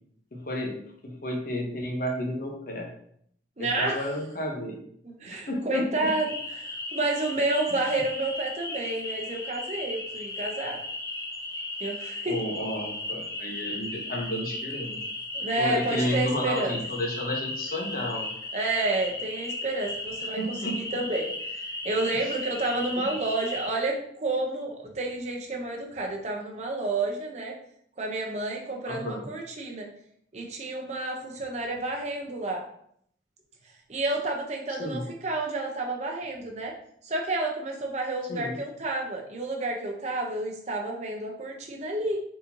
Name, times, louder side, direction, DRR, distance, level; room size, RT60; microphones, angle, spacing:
voice 1, 0.3-0.7 1.0-2.9 3.6-4.8 5.3-5.9 12.3-15.0 15.6-18.3 20.4-20.8 22.2-22.3 28.8-29.3 34.7-35.0 38.3-38.6, left 1 dB, 50° left, 0 dB, 1.0 m, -31 dB
voice 2, 3.6-4.1 5.0-10.8 11.8-12.4 15.3-16.8 18.5-27.5 28.0-29.9 30.3-32.6 33.9-36.7 37.0-42.2, right 2 dB, 40° right, 1 dB, 0.7 m, -30 dB
sound 1, 6.0-23.7, left 2 dB, 15° left, 0.5 m, -36 dB
4.2 x 3.8 x 2.8 m, 0.67 s
head